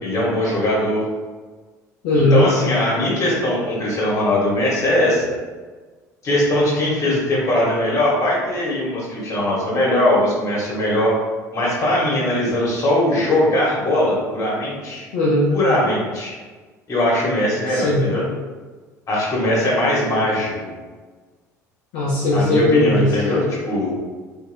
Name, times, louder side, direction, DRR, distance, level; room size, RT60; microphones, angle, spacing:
voice 1, 0.0-1.1 2.1-5.2 6.2-11.1 11.5-15.0 15.5-16.3 16.9-18.2 19.1-20.5 22.3-23.9, left 1 dB, 35° left, -5 dB, 1.2 m, -20 dB
voice 2, 2.0-2.4 15.1-15.5 17.7-18.1 21.9-23.2, left 1 dB, 60° left, -6 dB, 0.5 m, -17 dB
2.9 x 2.3 x 2.6 m, 1.4 s
figure-of-eight pair, 65°, 9 cm